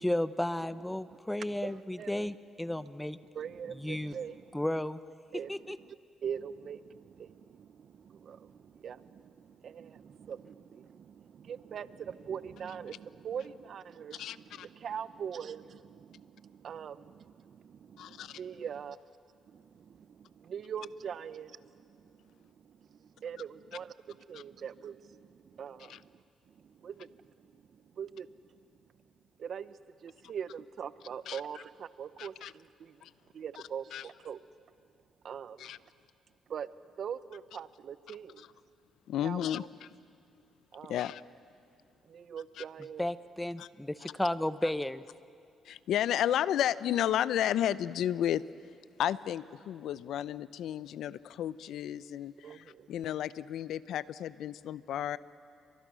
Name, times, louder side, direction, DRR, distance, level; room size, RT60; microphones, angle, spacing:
voice 1, 0.0-3.2 3.8-4.2 4.5-5.0 5.5-5.8 43.0-45.0, left 1 dB, 10° left, 14 dB, 0.8 m, -33 dB
voice 2, 0.6-2.4 2.7-2.8 3.3-4.6 5.3-6.0 6.2-19.0 19.4-28.6 29.4-33.0 33.3-34.4 35.2-35.7 36.5-36.7 37.0-38.4 39.2-39.4 40.7-41.0 42.0-43.1 52.4-52.9, right 7 dB, 60° right, 15 dB, 0.8 m, -43 dB
voice 3, 14.1-14.7 18.0-18.4 24.3-24.4 25.9-26.0 31.3-31.4 32.2-32.5 33.0-33.1 33.9-34.1 35.6-35.8 39.1-39.9 40.9-41.2 42.6-42.7 43.6-43.7 44.0-44.1 44.6-44.7 45.6-48.4 49.0-55.2, left 11 dB, 75° left, 17 dB, 0.6 m, -33 dB
29.5 x 24.5 x 6.3 m, 2.4 s
cardioid pair, 90°, 0 cm